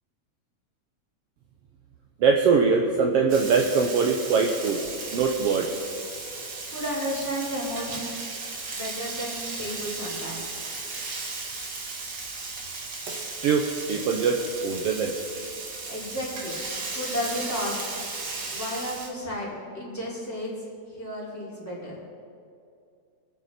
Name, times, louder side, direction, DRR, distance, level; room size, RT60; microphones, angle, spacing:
voice 1, 2.2-4.8 5.1-5.7 13.4-15.1, right 5 dB, 70° right, 2 dB, 1.6 m, -22 dB
Frying (food), 3.3-19.1, right 3 dB, 45° right, 1.7 m, -35 dB
voice 2, 6.6-8.3 8.7-10.6 15.9-16.6 16.9-17.8 18.4-20.5 21.0-22.0, equal, 5° left, -8 dB, 3.9 m, -33 dB
24.5 x 8.3 x 4.3 m, 2.4 s
omnidirectional pair, 3.3 m